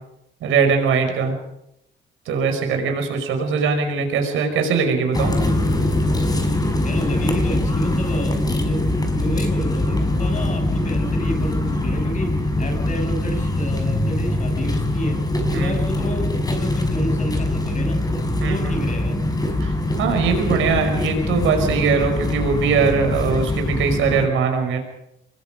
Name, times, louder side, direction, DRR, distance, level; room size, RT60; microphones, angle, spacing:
voice 1, 0.4-1.3 2.3-5.3 15.5-15.8 18.4-18.8 19.6-24.8, right 5 dB, 85° right, 5 dB, 5.4 m, -21 dB
sound 1, 5.1-24.3, left 1 dB, 20° left, 5.1 m, -22 dB
voice 2, 6.8-8.8 9.2-15.2 15.5-18.0 18.4-19.2, equal, 40° left, 5 dB, 7.1 m, -30 dB
25.5 x 21.5 x 5.2 m, 0.80 s
cardioid pair, 90°, 20 cm